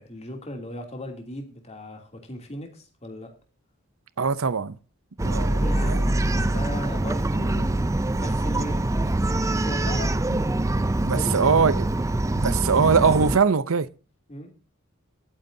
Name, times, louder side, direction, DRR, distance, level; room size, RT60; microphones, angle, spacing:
voice 1, 0.0-3.3 5.2-7.8 8.2-9.1 9.6-10.1 10.9-11.6 14.3-14.5, left 1 dB, 30° left, 2.9 m, -37 dB
voice 2, 4.2-4.8 5.2-6.0 11.0-11.8 12.4-13.9, right 5 dB, 80° right, 0.7 m, -21 dB
Bark, 5.2-13.4, right 1 dB, 15° right, 0.5 m, -24 dB
18.0 x 9.2 x 2.8 m
head